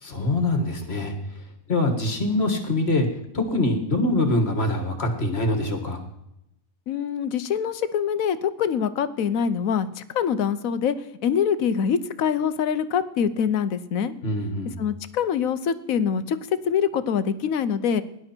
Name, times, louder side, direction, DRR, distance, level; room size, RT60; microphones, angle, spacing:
voice 1, 0.0-1.2 1.7-3.1 3.3-6.0 14.2-14.7, left 2 dB, 50° left, 6 dB, 1.9 m, -24 dB
voice 2, 6.9-10.9 11.2-14.1 14.8-16.4 16.7-18.0, left 7 dB, 75° left, 13 dB, 1.2 m, -24 dB
18.0 x 11.0 x 4.5 m, 0.83 s
omnidirectional pair, 1.5 m